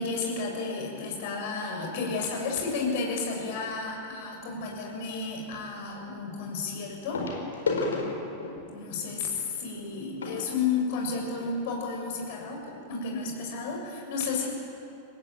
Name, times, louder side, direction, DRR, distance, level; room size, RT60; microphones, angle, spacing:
voice 1, 0.0-7.2 8.7-14.5, left 4 dB, 50° left, 0 dB, 7.1 m, -32 dB
sound 1, 3.6-3.9 5.5-5.6 7.1-11.5 12.3-12.4 12.6-12.8 13.3-13.4, left 3 dB, 70° left, 4.9 m, -34 dB
25.0 x 19.5 x 9.1 m, 2.7 s
figure-of-eight pair, 90°, 0 cm